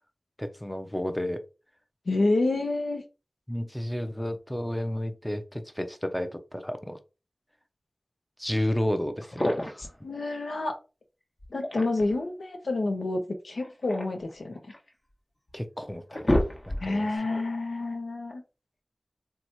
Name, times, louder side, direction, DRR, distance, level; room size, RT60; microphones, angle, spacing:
voice 1, 0.4-1.4 3.5-7.0 8.4-9.8 15.5-16.2 16.7-17.4, left 1 dB, 10° left, 0.6 m, -32 dB
voice 2, 2.1-3.0 10.0-10.7 11.5-14.6 16.8-18.4, left 2 dB, 90° left, 0.6 m, -28 dB
sound 1, 9.2-10.0 11.4-12.2 13.5-14.9 15.5-15.6 15.9-17.1, left 1 dB, 50° left, 1.2 m, -29 dB
2.9 x 2.2 x 4.2 m
wide cardioid pair, 45°, 0 cm